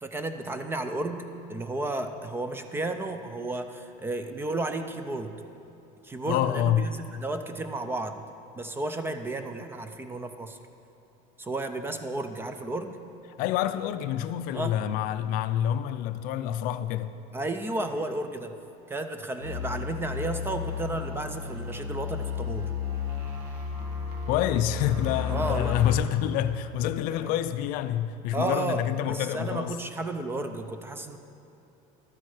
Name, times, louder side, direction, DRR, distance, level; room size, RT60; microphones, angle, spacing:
voice 1, 0.0-5.4 6.0-8.3 8.6-10.6 11.4-13.0 14.5-14.8 17.3-18.6 18.9-22.7 25.3-25.7 27.2-27.3 28.3-28.8 29.1-31.2, right 2 dB, 15° right, 0.4 m, -33 dB
voice 2, 6.3-6.9 13.4-17.2 24.3-29.8, left 11 dB, 55° left, 0.4 m, -27 dB
sound 1, 19.4-26.0, left 7 dB, 80° right, 1.7 m, -33 dB
12.5 x 8.5 x 4.8 m
cardioid pair, 155°, 18 cm